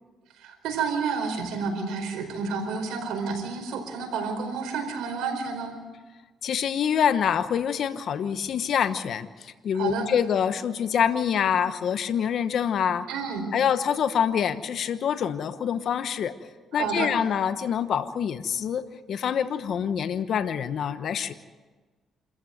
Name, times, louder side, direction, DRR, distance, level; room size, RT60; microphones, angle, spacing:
voice 1, 0.4-5.7 9.7-10.1 13.1-13.5 16.7-17.1, right 5 dB, 85° right, 4 dB, 4.8 m, -30 dB
voice 2, 6.4-13.1 13.5-16.3 16.7-18.8 19.1-21.3, left 8 dB, 65° left, 11 dB, 1.1 m, -26 dB
27.0 x 14.5 x 7.9 m, 1.3 s
cardioid pair, 90°, 0 cm